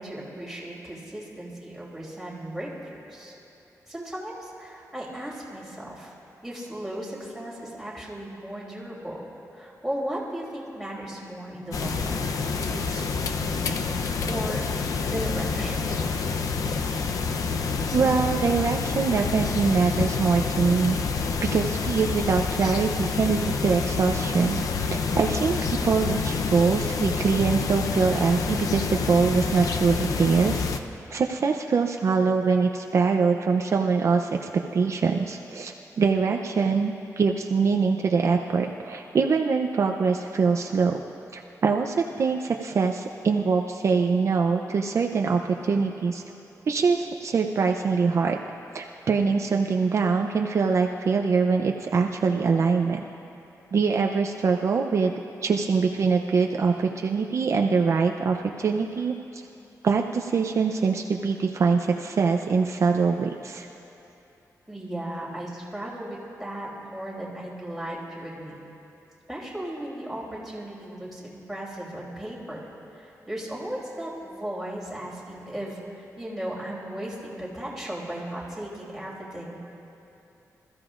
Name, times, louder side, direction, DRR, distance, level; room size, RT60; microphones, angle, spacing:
voice 1, 0.0-3.3 3.9-6.1 6.4-9.2 9.5-12.2 12.6-14.7 15.1-15.8 64.7-68.5 69.3-72.6 72.9-79.6, right 1 dB, 5° right, -6 dB, 3.0 m, -36 dB
sound 1, 11.7-30.8, left 4 dB, 70° left, 0.6 m, -28 dB
voice 2, 17.9-21.0 21.4-24.6 24.9-30.7 31.1-41.0 41.3-46.2 46.7-48.4 48.7-53.0 53.7-55.1 55.4-59.4 59.8-63.7, right 5 dB, 50° right, 3 dB, 0.5 m, -23 dB
26.0 x 14.5 x 2.5 m, 3.0 s
wide cardioid pair, 155°, 6 cm